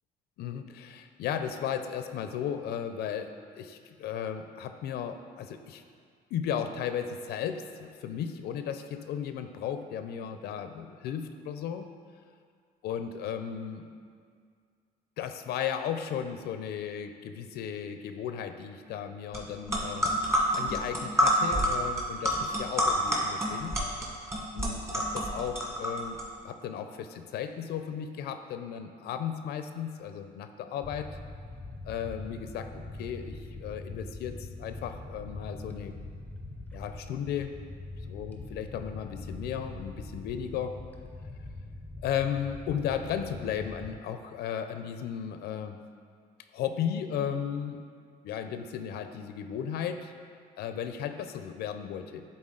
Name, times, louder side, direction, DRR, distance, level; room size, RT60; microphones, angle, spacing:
voice 1, 0.4-5.8 6.3-11.9 12.8-13.8 15.2-20.1 20.5-23.8 24.5-31.1 31.8-35.9 36.7-37.5 38.1-40.8 42.0-45.8 46.5-47.8 48.2-50.1 50.6-52.2, left 8 dB, 75° left, 8 dB, 0.5 m, -35 dB
sound 1, 19.3-19.4 19.7-26.2, equal, 15° right, 1.6 m, -28 dB
sound 2, 30.8-44.0, left 2 dB, 10° left, 0.6 m, -43 dB
10.0 x 3.9 x 3.8 m, 2.1 s
cardioid pair, 110°, 17 cm